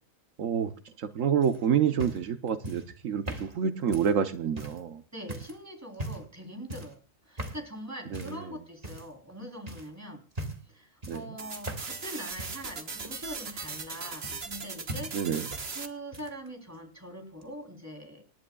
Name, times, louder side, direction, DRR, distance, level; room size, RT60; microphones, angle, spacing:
voice 1, 0.4-0.7 1.0-5.0 8.1-8.5 11.1-11.4 15.1-15.5, right 8 dB, 80° right, 9 dB, 1.3 m, -28 dB
sound 1, 1.4-4.9 5.3-5.6 5.9-6.4 6.7-7.0 7.4-7.7 8.1-8.4 8.8-9.3 9.7-9.9 10.3-10.7 11.0-12.1 12.4-14.6 14.9-15.7 16.0-16.5 17.4-17.5, right 1 dB, 30° right, 1.9 m, -40 dB
voice 2, 5.1-7.0 7.3-10.3 10.7-15.5 15.7-18.2, equal, 10° right, 2 dB, 3.5 m, -43 dB
sound 2, 11.4-15.9, right 4 dB, 50° right, 1.6 m, -39 dB
27.5 x 11.0 x 2.3 m, 0.32 s
omnidirectional pair, 1.3 m